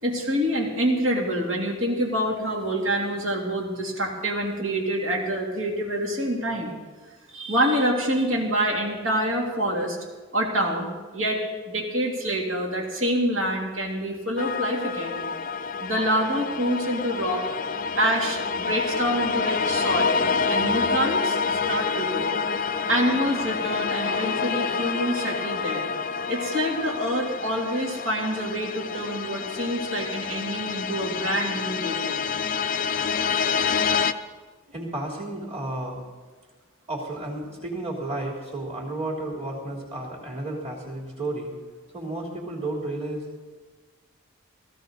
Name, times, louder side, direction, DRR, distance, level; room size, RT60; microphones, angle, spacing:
voice 1, 0.0-6.7 7.3-10.0 10.3-11.4 11.7-15.2 15.8-17.4 18.0-20.2 20.5-22.3 22.9-25.9 26.3-32.3, equal, 65° right, -1 dB, 2.9 m, -26 dB
sound 1, 14.4-34.1, left 5 dB, 40° left, 0.5 m, -27 dB
voice 2, 34.7-36.0 36.9-41.5 41.9-43.4, right 2 dB, 30° right, -3 dB, 3.3 m, -32 dB
16.5 x 15.5 x 4.1 m, 1.3 s
head